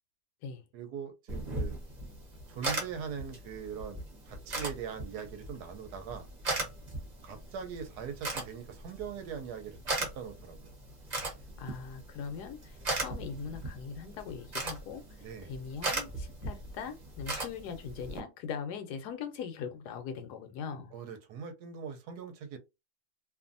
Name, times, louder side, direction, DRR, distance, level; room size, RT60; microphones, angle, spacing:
voice 1, 0.7-1.7 2.5-6.3 7.2-10.7 15.2-15.5 20.9-22.6, right 7 dB, 75° right, 1.1 m, -41 dB
sound 1, 1.3-18.2, right 2 dB, 35° right, 0.7 m, -39 dB
voice 2, 11.6-20.9, left 6 dB, 75° left, 1.1 m, -41 dB
2.6 x 2.5 x 2.5 m
omnidirectional pair, 1.9 m